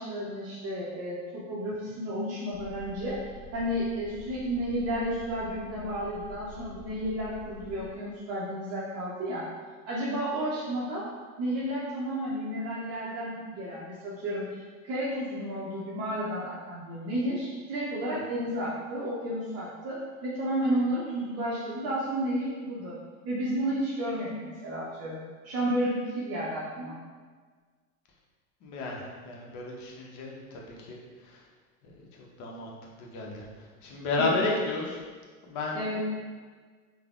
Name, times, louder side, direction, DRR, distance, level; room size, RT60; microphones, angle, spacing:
voice 1, 0.0-3.2 3.5-9.4 9.9-11.0 11.4-22.9 23.2-27.0 35.7-36.0, equal, 35° right, -7 dB, 0.6 m, -32 dB
sound 1, 2.5-7.9, right 1 dB, 85° right, 0.7 m, -47 dB
voice 2, 28.6-31.4 31.8-32.7 33.0-33.4 33.8-35.0 35.4-36.0, left 2 dB, 45° left, -1 dB, 0.7 m, -33 dB
3.2 x 2.0 x 2.4 m, 1.5 s
hypercardioid pair, 85°, 42 cm